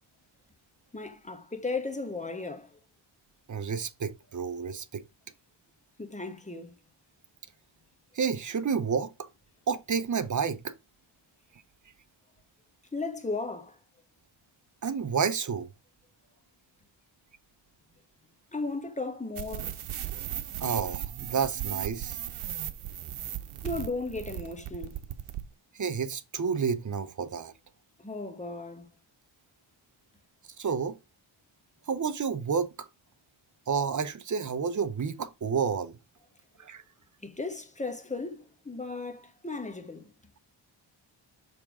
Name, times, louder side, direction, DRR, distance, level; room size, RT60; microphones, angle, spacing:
voice 1, 0.9-2.8 6.0-6.8 12.9-13.8 18.5-19.8 23.6-25.0 28.0-28.9 37.2-40.1, left 3 dB, 15° left, 1.3 m, -36 dB
voice 2, 3.5-5.0 8.1-9.3 9.7-10.7 14.8-15.7 20.6-22.2 25.7-27.5 30.6-31.0 31.9-32.9 33.7-35.9 36.6-36.8, right 6 dB, 40° right, 0.7 m, -30 dB
sound 1, 19.4-25.5, right 11 dB, 85° right, 0.9 m, -36 dB
6.8 x 3.6 x 4.9 m
wide cardioid pair, 120°, 49 cm